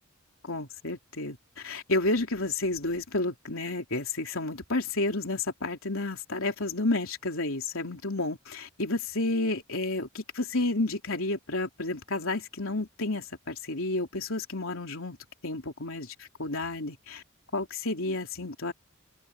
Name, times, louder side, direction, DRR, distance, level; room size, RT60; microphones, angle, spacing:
voice 1, 0.4-15.2 15.4-17.2 17.5-18.7, left 2 dB, 70° left, 3.3 m, -31 dB
head